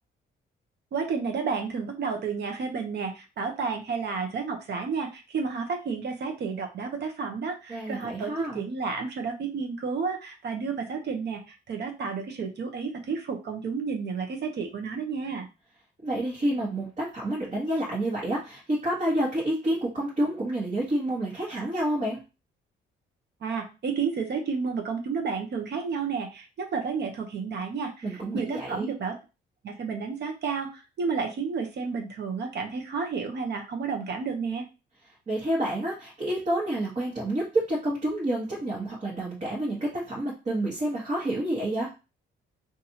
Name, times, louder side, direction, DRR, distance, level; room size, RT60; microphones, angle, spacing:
voice 1, 0.9-15.5 23.4-29.2 29.6-34.7, right 5 dB, 60° right, 4 dB, 0.9 m, -31 dB
voice 2, 7.7-8.6 16.0-22.2 28.0-28.9 35.3-41.9, right 1 dB, 35° right, -5 dB, 1.4 m, -29 dB
4.0 x 2.6 x 2.9 m, 0.30 s
cardioid pair, 90°, 20 cm